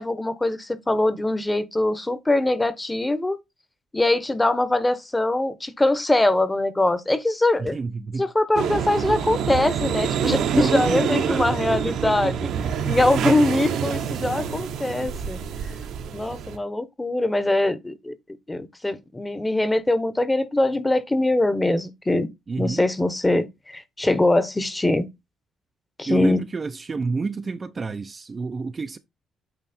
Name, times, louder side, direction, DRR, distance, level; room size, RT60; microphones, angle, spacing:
voice 1, 0.0-3.4 3.9-7.8 8.2-12.4 12.9-15.4 16.1-18.1 18.5-22.3 22.6-25.1 26.0-26.4, left 2 dB, 15° left, 1.0 m, -22 dB
voice 2, 7.6-8.2 10.5-12.7 22.5-22.8 26.1-29.0, right 4 dB, 35° right, 0.6 m, -29 dB
sound 1, 8.6-16.6, right 8 dB, 80° right, 1.2 m, -26 dB
8.9 x 3.1 x 4.3 m
cardioid pair, 90°, 0 cm